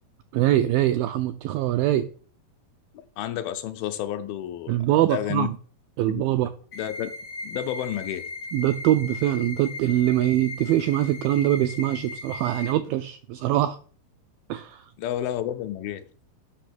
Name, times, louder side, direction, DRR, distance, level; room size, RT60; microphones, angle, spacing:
voice 1, 0.3-2.1 4.7-5.5 6.0-6.5 8.5-13.8 14.5-14.8, right 13 dB, 85° right, 2.0 m, -23 dB
voice 2, 3.2-4.7 5.1-5.5 6.1-6.2 6.7-7.1 7.4-8.3 15.0-16.1, left 11 dB, 80° left, 2.3 m, -30 dB
sound 1, 6.7-12.7, left 3 dB, 60° left, 1.2 m, -38 dB
8.4 x 5.9 x 6.0 m
omnidirectional pair, 4.5 m